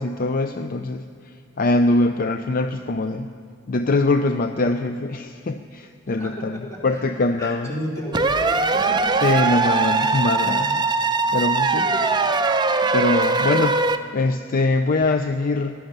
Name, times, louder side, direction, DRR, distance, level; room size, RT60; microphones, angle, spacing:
voice 1, 0.0-3.3 3.7-7.7 9.2-10.9 11.3-11.8 12.8-13.8 14.1-15.7, left 2 dB, 45° left, 8 dB, 0.5 m, -23 dB
voice 2, 6.7-9.0 11.9-12.0, equal, 15° left, -3 dB, 3.1 m, -32 dB
sound 1, 8.1-14.0, right 3 dB, 20° right, 0.6 m, -21 dB
16.0 x 11.5 x 6.7 m, 2.4 s
head